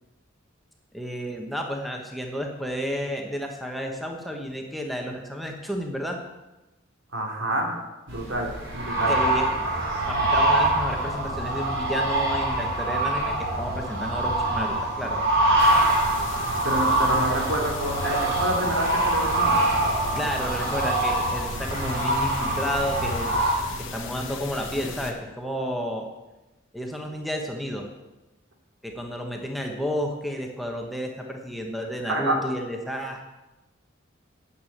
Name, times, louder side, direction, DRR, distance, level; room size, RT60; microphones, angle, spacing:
voice 1, 0.9-6.2 9.1-9.6 10.1-15.2 20.2-26.1 26.7-27.9 28.8-33.2, equal, ahead, 1 dB, 1.1 m, -31 dB
voice 2, 7.1-7.7 8.1-9.2 16.6-19.7 32.1-32.3, right 1 dB, 80° right, 0 dB, 2.8 m, -28 dB
sound 1, 8.1-23.5, right 1 dB, 65° right, 3.6 m, -24 dB
sound 2, 15.6-25.1, left 4 dB, 75° left, 1.3 m, -37 dB
9.5 x 6.9 x 8.6 m, 1.1 s
head